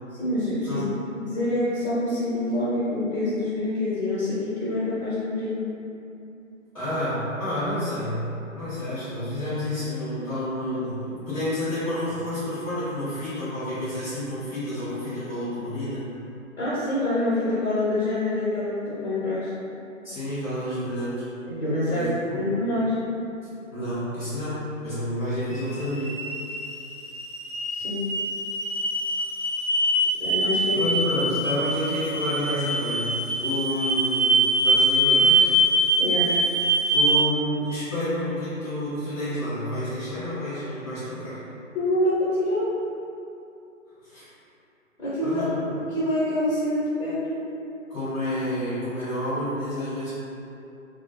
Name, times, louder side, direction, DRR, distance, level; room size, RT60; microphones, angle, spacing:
voice 1, 0.2-0.8 1.1-5.5 16.6-19.5 21.5-23.0 27.7-28.0 30.2-30.8 36.0-36.3 41.7-42.7 45.0-45.4 45.8-47.4, left 1 dB, 55° left, -11 dB, 0.9 m, -26 dB
voice 2, 6.7-16.0 20.0-21.2 21.9-22.5 23.7-26.2 30.7-35.5 36.2-36.4 36.9-41.4 44.0-44.3 45.2-45.7 47.9-50.1, left 1 dB, 20° left, -15 dB, 0.8 m, -29 dB
sound 1, 25.5-37.2, right 1 dB, 30° right, 0.6 m, -24 dB
2.2 x 2.0 x 2.9 m, 2.7 s
figure-of-eight pair, 145°, 40 cm